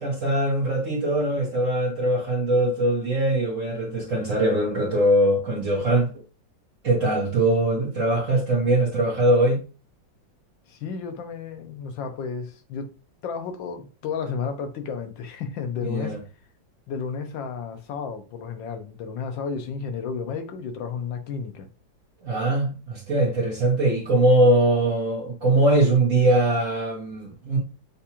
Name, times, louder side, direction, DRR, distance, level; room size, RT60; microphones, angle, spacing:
voice 1, 0.0-6.1 6.8-9.6 15.9-16.2 22.2-27.6, right 1 dB, 45° right, 1.4 m, -21 dB
voice 2, 10.7-12.9 13.2-16.2 16.9-21.7, left 6 dB, 80° left, 1.5 m, -32 dB
7.0 x 2.5 x 2.9 m
omnidirectional pair, 2.0 m